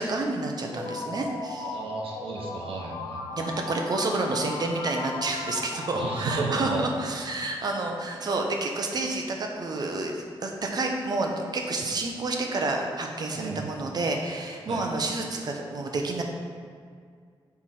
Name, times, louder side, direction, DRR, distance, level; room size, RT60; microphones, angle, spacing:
voice 1, 0.0-1.8 3.3-16.2, right 2 dB, 45° right, 2 dB, 0.8 m, -29 dB
sound 1, 0.7-7.5, left 3 dB, 60° left, 0.9 m, -37 dB
voice 2, 1.7-3.5 5.9-6.9 13.3-13.7 14.7-14.8, right 3 dB, 85° right, 0 dB, 1.0 m, -33 dB
5.9 x 4.7 x 4.3 m, 2.1 s
wide cardioid pair, 130°, 9 cm